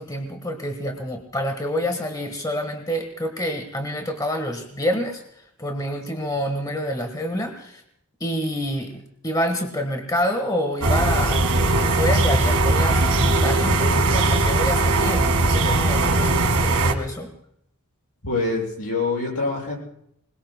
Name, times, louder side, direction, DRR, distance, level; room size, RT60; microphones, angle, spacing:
voice 1, 0.0-7.8 8.2-17.3, equal, 15° left, 5 dB, 1.4 m, -27 dB
sound 1, 10.8-16.9, right 2 dB, 85° right, 1.8 m, -19 dB
voice 2, 18.2-19.8, left 3 dB, 75° left, -3 dB, 7.0 m, -25 dB
26.0 x 21.0 x 2.2 m, 0.73 s
head